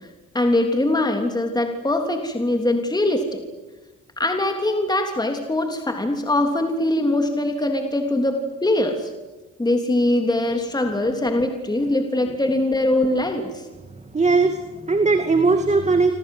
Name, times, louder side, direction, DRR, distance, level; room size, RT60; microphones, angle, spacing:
voice 1, 0.3-3.4 4.2-9.1 9.6-13.6, left 1 dB, 15° left, 4 dB, 3.4 m, -22 dB
voice 2, 14.1-16.1, right 3 dB, 20° right, 7 dB, 2.3 m, -19 dB
27.5 x 26.5 x 8.0 m, 1.2 s
cardioid pair, 90°, 30 cm